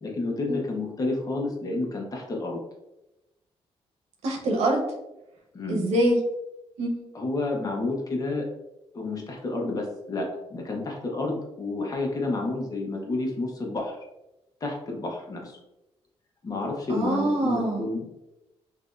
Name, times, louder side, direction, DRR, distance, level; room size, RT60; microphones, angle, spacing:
voice 1, 0.0-2.6 5.5-5.9 7.1-8.4 8.9-14.0 14.6-15.6 16.4-18.0, left 2 dB, 35° left, 0 dB, 1.0 m, -30 dB
voice 2, 4.2-4.8 5.7-6.2 6.8-7.1 16.9-17.9, right 1 dB, 85° right, 1 dB, 0.9 m, -25 dB
5.9 x 2.7 x 2.6 m, 0.93 s
cardioid pair, 125°, 11 cm